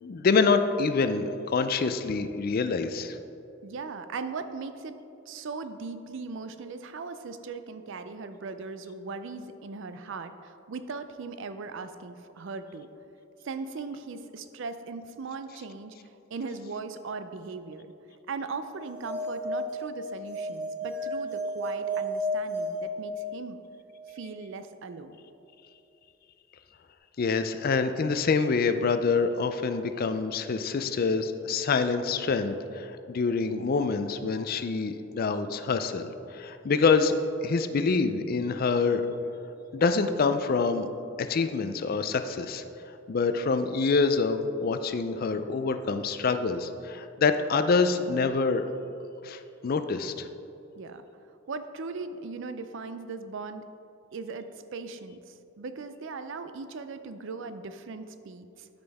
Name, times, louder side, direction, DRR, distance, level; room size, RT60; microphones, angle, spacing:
voice 1, 0.0-3.2 27.2-37.2 37.4-39.0 39.7-40.9 41.2-42.6 43.1-48.6 49.2-50.3, left 4 dB, 45° left, 9 dB, 0.4 m, -26 dB
voice 2, 3.6-5.0 5.3-12.9 13.4-16.0 16.3-17.9 18.3-23.6 24.1-25.2 50.8-51.0 51.5-53.6 54.1-58.7, right 4 dB, 60° right, 10 dB, 0.4 m, -38 dB
sound 1, 18.8-23.6, equal, 5° right, 1.6 m, -33 dB
12.5 x 5.3 x 3.5 m, 2.8 s
head